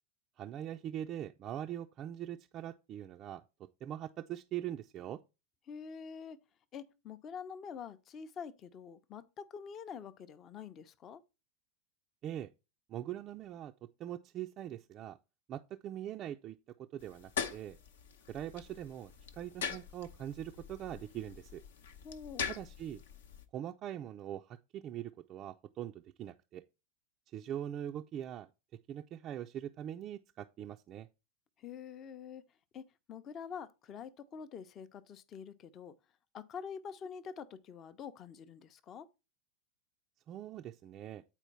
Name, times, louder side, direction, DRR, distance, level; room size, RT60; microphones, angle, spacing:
voice 1, 0.4-3.4 3.8-5.2 12.2-12.5 12.9-15.2 15.5-17.8 18.3-21.6 22.5-23.0 23.5-26.6 27.3-28.5 28.9-31.1 40.3-41.2, right 11 dB, 30° right, 0.4 m, -42 dB
voice 2, 5.7-6.4 6.7-11.2 22.0-22.6 31.6-32.4 32.7-35.9 36.3-39.1, left 7 dB, 30° left, 0.7 m, -46 dB
sound 1, 17.0-23.4, left 7 dB, 60° left, 0.8 m, -43 dB
9.0 x 4.4 x 4.2 m
figure-of-eight pair, 90°, 0 cm